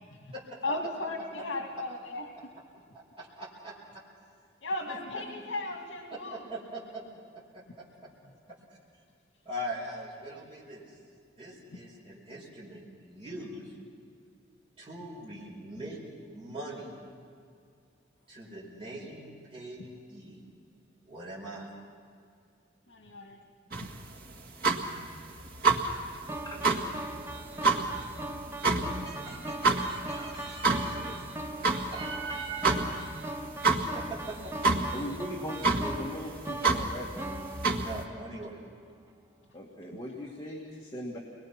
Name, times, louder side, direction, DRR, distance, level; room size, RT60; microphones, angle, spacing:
voice 1, 0.6-2.3 4.6-6.5 8.2-8.3 10.3-10.4 11.7-11.8 22.9-23.4 23.8-23.9 32.7-32.8 39.9-40.0, left 2 dB, 75° left, 2 dB, 2.0 m, -36 dB
voice 2, 2.9-4.0 4.9-5.2 6.1-7.0 7.3-8.1 8.5-8.6 9.5-10.8 11.4-13.7 14.8-16.0 16.3-16.9 18.3-20.4 21.1-21.7 29.0-31.5 31.9-33.0 33.9-34.5 37.8-38.6, right 1 dB, 30° right, -6 dB, 5.3 m, -42 dB
sound 1, 23.7-38.0, right 3 dB, 50° right, 1.9 m, -30 dB
sound 2, 26.3-38.5, right 1 dB, 15° right, 0.9 m, -41 dB
voice 3, 34.9-37.1 39.5-41.2, left 1 dB, 20° left, -3 dB, 2.2 m, -39 dB
29.5 x 22.0 x 6.0 m, 2.3 s
head